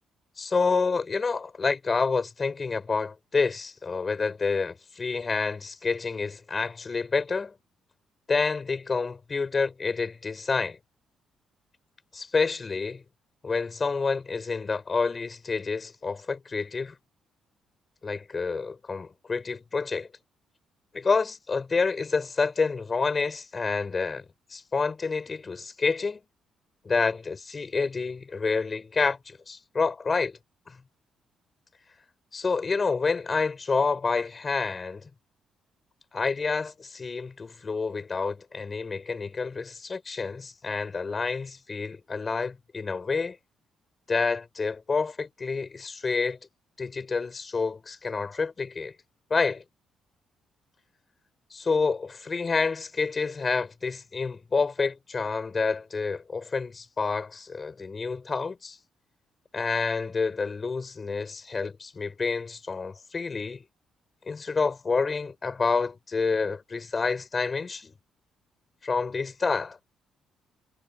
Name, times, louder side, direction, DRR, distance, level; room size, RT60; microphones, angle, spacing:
voice 1, 0.4-7.5 8.3-10.8 12.1-13.0 13.4-16.9 18.0-20.1 20.9-24.3 24.5-26.2 26.9-30.4 30.7-30.8 32.3-35.1 36.1-43.4 44.1-46.4 46.8-48.9 49.3-49.6 51.5-58.8 59.5-63.6 64.3-67.9 68.8-69.8, left 4 dB, 35° left, 5.5 m, -28 dB
cardioid pair, 90°, 0 cm